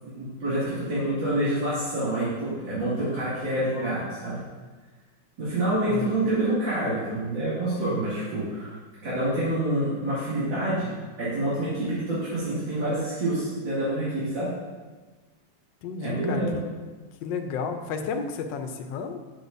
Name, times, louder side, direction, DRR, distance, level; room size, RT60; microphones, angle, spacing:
voice 1, 0.0-4.4 5.4-8.7 9.0-10.9 11.2-14.5 16.0-16.6, right 1 dB, 75° right, -12 dB, 3.0 m, -27 dB
voice 2, 15.8-16.6 17.2-19.2, left 5 dB, 75° left, 6 dB, 1.3 m, -32 dB
8.1 x 7.6 x 2.6 m, 1.3 s
omnidirectional pair, 2.1 m